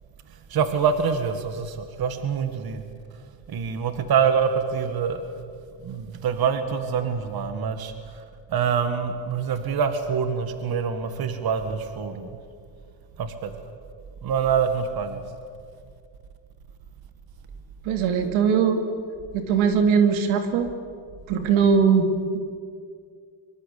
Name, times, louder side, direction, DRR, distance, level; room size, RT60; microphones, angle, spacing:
voice 1, 0.5-2.8 3.5-5.3 5.8-8.2 8.5-12.4 13.2-13.5 14.2-15.2, right 6 dB, 50° right, 8 dB, 2.0 m, -25 dB
voice 2, 17.8-18.9 19.3-20.7 21.3-22.4, right 6 dB, 85° right, 6 dB, 2.9 m, -20 dB
24.0 x 24.0 x 8.5 m, 2.2 s
cardioid pair, 110°, 47 cm